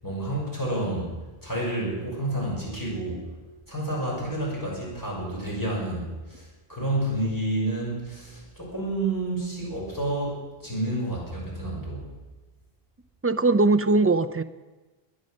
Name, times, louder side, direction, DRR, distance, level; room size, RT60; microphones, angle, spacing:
voice 1, 0.0-1.1 1.4-3.2 3.7-12.1, right 1 dB, 20° left, -4 dB, 6.2 m, -29 dB
voice 2, 13.2-14.4, right 3 dB, 20° right, 10 dB, 0.3 m, -20 dB
20.0 x 10.5 x 6.5 m, 1.2 s
omnidirectional pair, 1.0 m